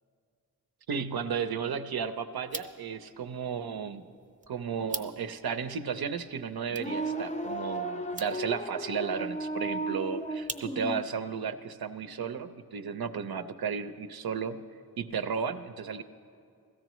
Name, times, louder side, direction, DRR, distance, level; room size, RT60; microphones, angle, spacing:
voice 1, 0.9-4.0 4.5-14.6 15.0-16.0, right 6 dB, 75° right, 10 dB, 0.6 m, -34 dB
sound 1, 2.4-11.1, right 3 dB, 20° right, 0.7 m, -46 dB
sound 2, 6.7-11.1, right 2 dB, 20° left, 0.5 m, -35 dB
16.5 x 14.0 x 3.0 m, 2.4 s
cardioid pair, 45°, 37 cm